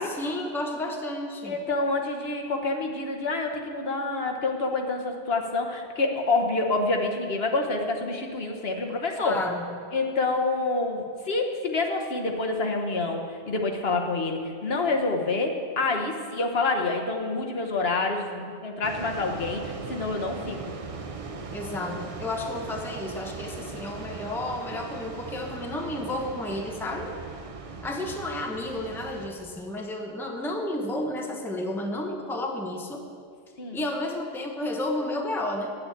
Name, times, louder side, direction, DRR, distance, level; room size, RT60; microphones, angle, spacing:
voice 1, 0.0-1.6 9.2-9.7 21.5-27.1 27.8-33.0 33.7-35.7, left 1 dB, ahead, 2 dB, 0.9 m, -32 dB
voice 2, 1.4-9.4 9.9-20.6 33.6-33.8, left 3 dB, 60° left, 2 dB, 1.3 m, -27 dB
sound 1, 18.8-29.3, right 4 dB, 35° right, 0.7 m, -39 dB
8.8 x 8.6 x 8.5 m, 2.2 s
omnidirectional pair, 1.2 m